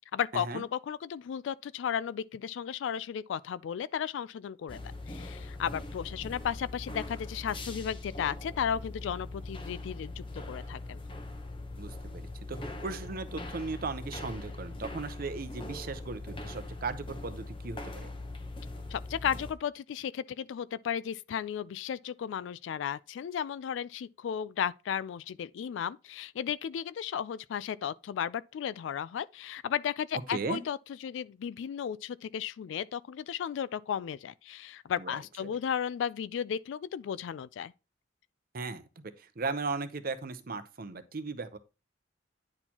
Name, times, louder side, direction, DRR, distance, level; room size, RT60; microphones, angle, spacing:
voice 1, 0.1-4.8 5.1-11.0 18.9-37.7, left 8 dB, 75° left, 0.3 m, -34 dB
sound 1, 4.7-19.5, left 2 dB, 25° left, 0.8 m, -41 dB
voice 2, 11.8-18.1 30.3-30.6 35.0-35.1 35.4-35.5 38.5-41.6, right 4 dB, 50° right, 0.7 m, -37 dB
9.7 x 4.4 x 2.8 m
head